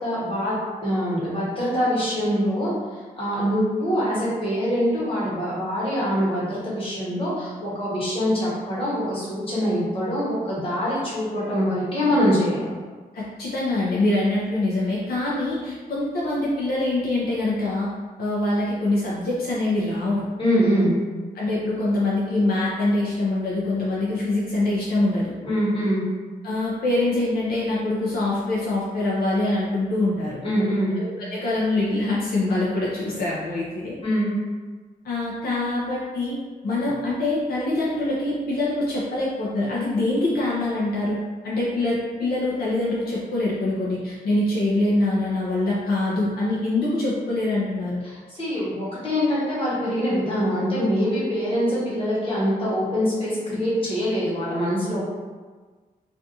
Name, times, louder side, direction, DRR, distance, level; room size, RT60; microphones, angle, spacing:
voice 1, 0.0-12.7 20.4-21.0 25.4-26.0 30.4-30.9 34.0-34.3 48.0-55.0, equal, 35° left, -9 dB, 1.2 m, -24 dB
voice 2, 13.1-17.9 18.2-20.3 21.4-25.3 26.4-30.4 31.0-34.0 35.0-36.4 36.6-41.2 41.4-48.0, left 2 dB, 80° left, -6 dB, 0.5 m, -24 dB
2.5 x 2.3 x 2.7 m, 1.4 s
cardioid pair, 100°, 16 cm